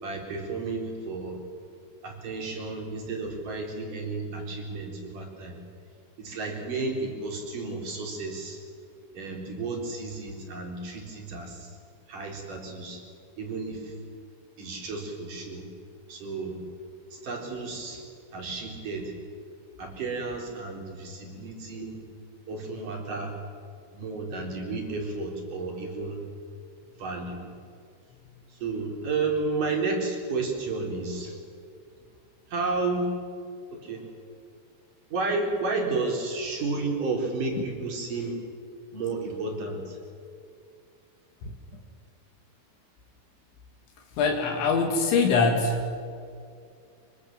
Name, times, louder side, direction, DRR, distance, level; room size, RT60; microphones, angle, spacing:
voice 1, 0.0-1.4 2.0-5.6 6.2-8.6 9.1-11.7 12.1-13.0 13.4-13.9 14.6-15.6 16.1-16.6 17.1-18.0 18.3-19.1 19.8-22.0 22.5-23.3 23.9-26.2 27.0-27.4 28.5-31.4 32.5-33.1 33.7-34.0 35.1-38.4 38.9-40.0, right 3 dB, 45° right, 1 dB, 5.0 m, -32 dB
voice 2, 44.2-45.9, left 4 dB, 70° left, 3 dB, 4.1 m, -23 dB
25.0 x 24.0 x 7.5 m, 2.3 s
omnidirectional pair, 5.6 m